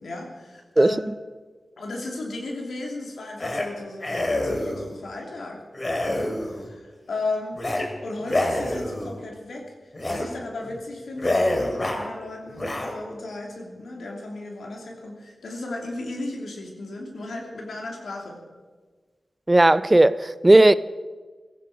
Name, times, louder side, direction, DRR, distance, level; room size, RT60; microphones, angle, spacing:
voice 1, 0.0-1.0 1.8-5.6 6.1-7.6 8.0-18.4, left 2 dB, 90° left, 2.8 m, -35 dB
sound 1, 3.4-3.7 4.0-4.9 5.7-6.7 7.5-7.9 8.2-9.2 9.9-10.3 10.6-10.8 11.2-12.1 12.5-12.9, left 1 dB, 35° left, 2.4 m, -26 dB
voice 2, 19.5-20.7, right 1 dB, 25° right, 0.4 m, -15 dB
16.5 x 14.5 x 5.0 m
cardioid pair, 65°, 0 cm